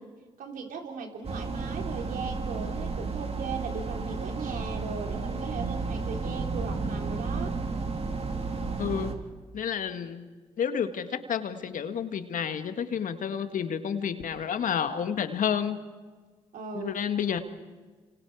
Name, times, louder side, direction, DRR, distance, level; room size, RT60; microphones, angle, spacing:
voice 1, 0.4-7.5 16.5-17.0, right 5 dB, 75° right, 3 dB, 3.5 m, -38 dB
sound 1, 1.2-9.1, right 4 dB, 45° right, 3.4 m, -32 dB
voice 2, 8.8-9.1 9.5-10.2 10.6-15.8 16.7-17.4, left 8 dB, 65° left, 9 dB, 1.8 m, -30 dB
29.5 x 26.5 x 4.8 m, 1.4 s
hypercardioid pair, 45°, 14 cm